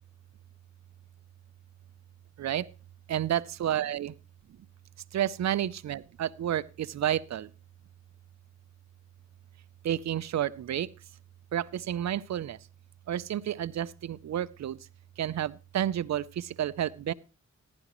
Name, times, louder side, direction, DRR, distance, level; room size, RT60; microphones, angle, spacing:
voice 1, 3.1-4.1 5.1-7.5 9.8-10.9 11.5-12.6 13.1-14.8 15.2-17.1, right 11 dB, 65° right, 0.5 m, -30 dB
15.0 x 10.5 x 3.0 m
cardioid pair, 60°, 29 cm